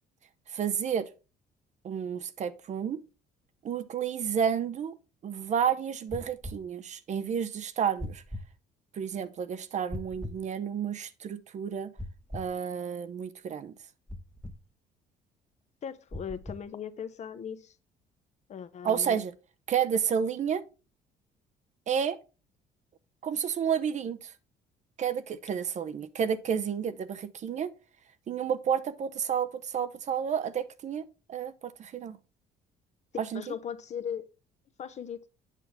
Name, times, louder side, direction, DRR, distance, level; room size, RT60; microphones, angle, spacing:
voice 1, 0.5-1.1 1.8-3.0 3.6-5.0 5.2-8.2 8.9-11.9 12.3-13.8 18.8-19.3 19.7-20.6 21.9-22.2 23.2-24.3 25.0-27.7 28.3-32.2 33.2-33.4, right 8 dB, 45° right, 0.6 m, -31 dB
sound 1, 6.1-6.6 8.0-8.5 9.9-10.4 12.0-12.5 14.1-14.6 16.1-16.6, left 1 dB, 5° left, 0.8 m, -39 dB
voice 2, 15.8-17.7 18.5-19.2 33.3-34.3 34.8-35.2, left 8 dB, 45° left, 0.7 m, -38 dB
8.3 x 5.8 x 3.4 m
cardioid pair, 110°, 17 cm